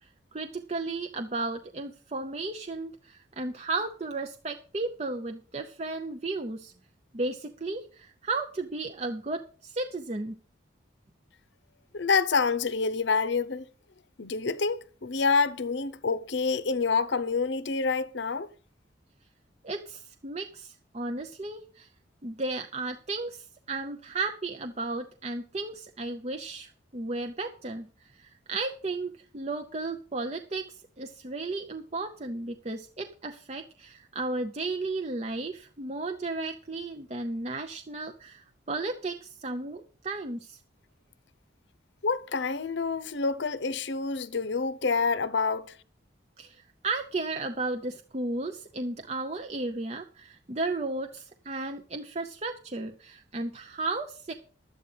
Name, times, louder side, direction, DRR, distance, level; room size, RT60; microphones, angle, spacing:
voice 1, 0.0-6.7 7.1-10.4 19.6-21.9 22.2-40.6 46.4-54.3, right 3 dB, 35° right, 0.6 m, -34 dB
voice 2, 11.9-13.7 14.2-18.5 42.0-45.7, left 4 dB, 65° left, 0.7 m, -27 dB
12.0 x 8.5 x 5.6 m
head